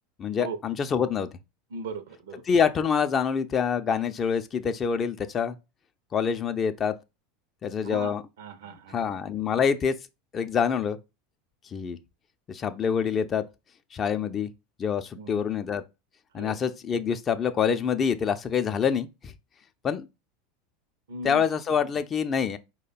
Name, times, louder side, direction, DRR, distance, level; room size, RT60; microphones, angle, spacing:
voice 1, 0.2-1.3 2.5-5.6 6.1-6.9 7.6-8.2 8.7-9.9 10.3-11.0 11.7-12.0 12.5-13.4 13.9-14.5 14.8-15.8 16.3-19.3 19.8-20.1 21.2-22.6, left 7 dB, 30° left, 0.4 m, -26 dB
voice 2, 1.7-2.4 7.8-9.1 15.2-15.5 16.4-16.6 21.1-21.4, right 3 dB, 65° right, 0.5 m, -38 dB
4.9 x 2.1 x 4.1 m
figure-of-eight pair, 80°, 0 cm